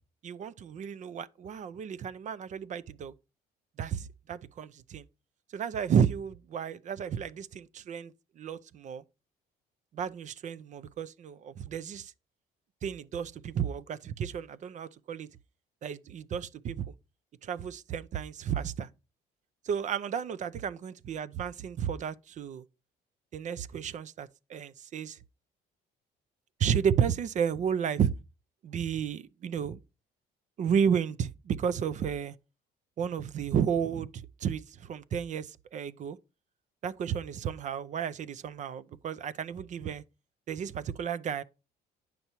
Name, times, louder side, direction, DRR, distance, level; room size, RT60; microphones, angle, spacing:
voice 1, 0.2-3.1 3.8-5.0 5.5-9.0 9.9-12.1 12.8-15.3 15.8-16.9 17.4-18.9 19.6-22.6 23.3-25.2 26.6-28.1 28.6-29.8 30.6-32.3 33.0-36.2 36.8-40.0 40.5-41.4, right 8 dB, 45° right, 0.5 m, -32 dB
9.2 x 5.5 x 2.9 m
cardioid pair, 110°, 17 cm